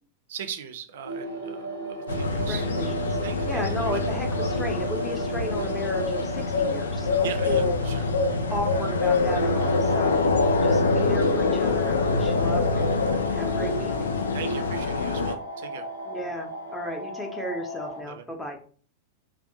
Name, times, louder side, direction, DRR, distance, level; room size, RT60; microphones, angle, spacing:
voice 1, 0.3-2.6 3.2-4.0 7.2-8.1 14.3-15.9 18.0-18.2, right 8 dB, 55° right, 8 dB, 0.4 m, -38 dB
sound 1, 1.0-18.0, right 2 dB, 85° left, 0.7 m, -35 dB
sound 2, 2.1-15.3, left 3 dB, 70° left, 0.3 m, -25 dB
voice 2, 2.4-3.2 3.5-7.7 8.5-10.2 10.6-13.0 13.3-13.9 16.1-18.6, left 1 dB, 10° left, 2 dB, 0.7 m, -34 dB
2.5 x 2.1 x 2.6 m, 0.42 s
figure-of-eight pair, 90°, 0 cm